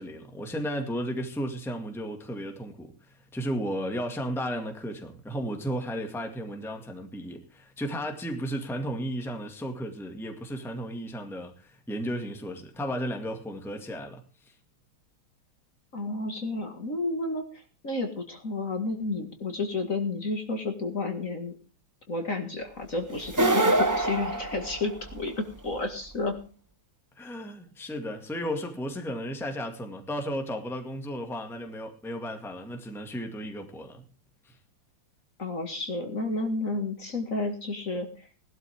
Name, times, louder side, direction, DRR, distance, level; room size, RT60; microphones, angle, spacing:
voice 1, 0.0-2.9 3.3-14.2 27.2-34.0 34.5-34.6, equal, ahead, 1.9 m, -34 dB
voice 2, 15.9-21.6 22.1-26.4 35.4-38.3, left 3 dB, 40° left, 2.3 m, -31 dB
sound 1, 23.2-25.3, right 2 dB, 20° right, 0.4 m, -25 dB
19.0 x 12.5 x 3.6 m
omnidirectional pair, 2.3 m